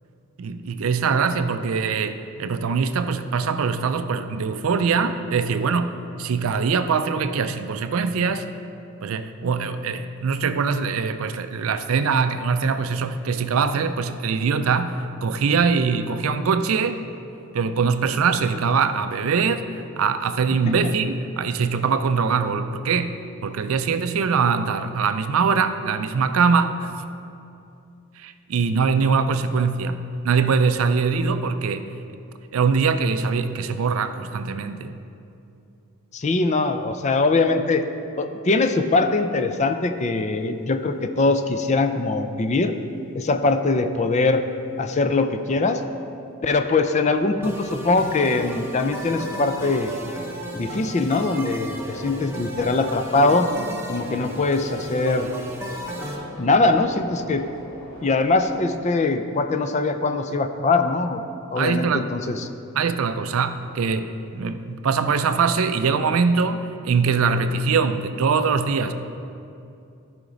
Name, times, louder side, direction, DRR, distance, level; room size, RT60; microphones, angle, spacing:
voice 1, 0.4-8.5 9.0-17.0 17.5-19.7 20.0-26.9 28.2-31.9 32.5-35.0 61.6-62.1 62.8-68.9, right 5 dB, 70° right, 10 dB, 0.4 m, -22 dB
voice 2, 36.1-37.9 38.2-42.7 43.1-44.4 44.8-45.8 46.4-49.9 50.6-53.5 53.9-55.3 56.4-57.5 58.0-61.2 61.5-62.5, left 3 dB, 30° left, 8 dB, 0.4 m, -22 dB
Subway metro underground, 47.2-58.6, left 1 dB, 65° left, 1.3 m, -40 dB
sound 1, 47.4-56.1, right 1 dB, 10° right, 0.8 m, -35 dB
14.0 x 5.0 x 3.9 m, 2.6 s
head